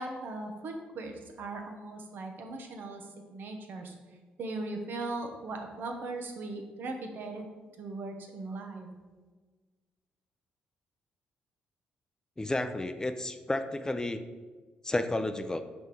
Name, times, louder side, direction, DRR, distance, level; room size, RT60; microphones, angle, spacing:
voice 1, 0.0-3.1 3.3-3.9 4.4-7.5 7.8-8.9, right 2 dB, 65° right, 4 dB, 1.0 m, -38 dB
voice 2, 12.4-14.2 14.8-15.6, left 2 dB, 20° left, 9 dB, 0.4 m, -31 dB
5.1 x 4.3 x 4.7 m, 1.4 s
supercardioid pair, 65°, 4 cm